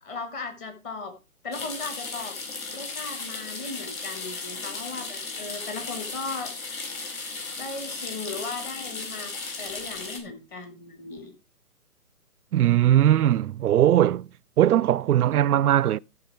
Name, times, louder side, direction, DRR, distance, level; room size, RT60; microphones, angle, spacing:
voice 1, 0.0-1.1 1.4-2.4 2.7-6.5 7.6-9.3 9.6-11.3, left 3 dB, 15° left, 1.3 m, -37 dB
sound 1, 1.5-10.2, left 4 dB, 65° left, 4.2 m, -36 dB
voice 2, 12.5-14.3 14.6-16.0, right 11 dB, 80° right, 0.5 m, -20 dB
13.5 x 6.1 x 4.3 m
hypercardioid pair, 160°, 44 cm